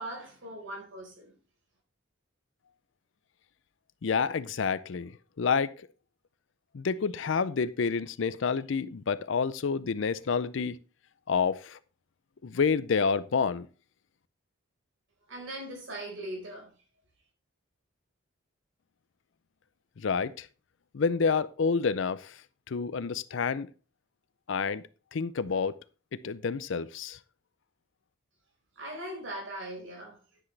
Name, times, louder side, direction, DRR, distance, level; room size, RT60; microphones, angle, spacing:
voice 1, 0.0-1.3 15.3-16.7 28.8-30.2, right 1 dB, 65° right, 4.5 m, -40 dB
voice 2, 4.0-5.9 6.7-10.8 11.3-11.8 12.4-13.7 20.0-20.5 20.9-22.4 22.7-23.7 24.5-24.8 25.1-25.7 26.2-27.2, left 5 dB, 65° left, 0.5 m, -28 dB
10.0 x 9.8 x 3.3 m
head